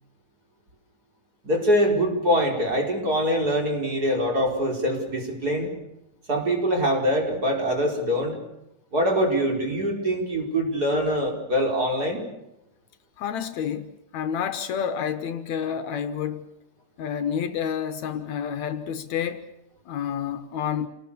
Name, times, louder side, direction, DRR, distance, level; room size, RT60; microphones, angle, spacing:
voice 1, 1.4-5.7 6.3-8.4 8.9-12.2, equal, 30° right, 5.0 m, -24 dB
voice 2, 13.2-16.5 17.0-19.5 19.9-20.9, left 8 dB, 70° left, 2.3 m, -29 dB
28.5 x 19.5 x 7.0 m
omnidirectional pair, 3.5 m